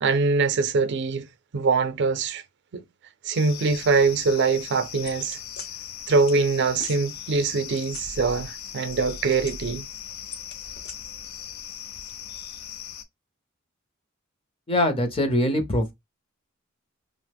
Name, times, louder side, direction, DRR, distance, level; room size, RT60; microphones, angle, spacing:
voice 1, 0.0-1.2 1.5-2.4 2.7-2.8 3.3-5.4 6.1-9.8, right 4 dB, 60° right, 0.4 m, -23 dB
sound 1, 3.3-13.0, left 9 dB, 85° left, 0.5 m, -39 dB
sound 2, 5.1-5.7 6.3-6.4 6.7-7.0 7.5-8.6 8.8-9.8 10.3-10.9, left 3 dB, 55° left, 0.7 m, -40 dB
voice 2, 14.7-15.9, left 1 dB, 30° left, 0.6 m, -23 dB
2.9 x 2.0 x 3.3 m
head